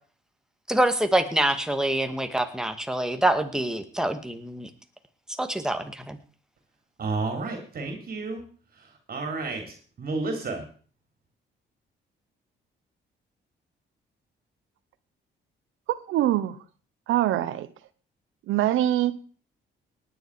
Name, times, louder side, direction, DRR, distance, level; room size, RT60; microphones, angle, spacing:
voice 1, 0.7-4.7 5.4-6.2, right 1 dB, 5° right, 2.1 m, -25 dB
voice 2, 7.0-8.4 9.1-10.6, right 3 dB, 50° right, 3.6 m, -31 dB
voice 3, 16.1-16.6 17.1-17.7 18.5-19.2, right 13 dB, 85° right, 1.1 m, -23 dB
18.5 x 10.0 x 5.0 m
cardioid pair, 90°, 20 cm